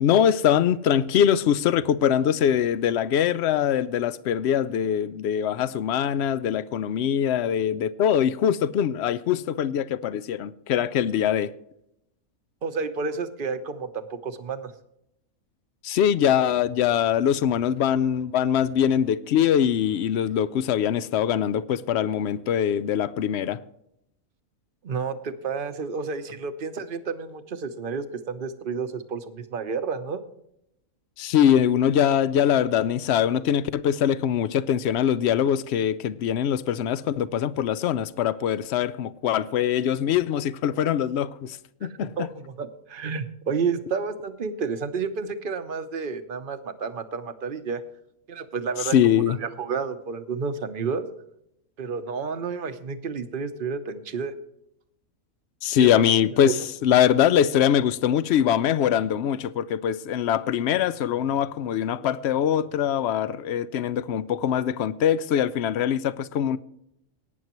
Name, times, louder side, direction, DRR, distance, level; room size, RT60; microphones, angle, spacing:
voice 1, 0.0-11.5 15.8-23.6 31.2-42.3 48.9-49.4 55.6-56.5 56.8-66.6, left 9 dB, 65° left, 0.7 m, -23 dB
voice 2, 12.6-14.7 24.8-30.2 41.8-47.8 48.3-48.9 49.3-51.1 51.8-54.3 55.8-55.9 56.4-56.5, right 5 dB, 45° right, 0.9 m, -30 dB
18.5 x 9.4 x 3.0 m
omnidirectional pair, 1.5 m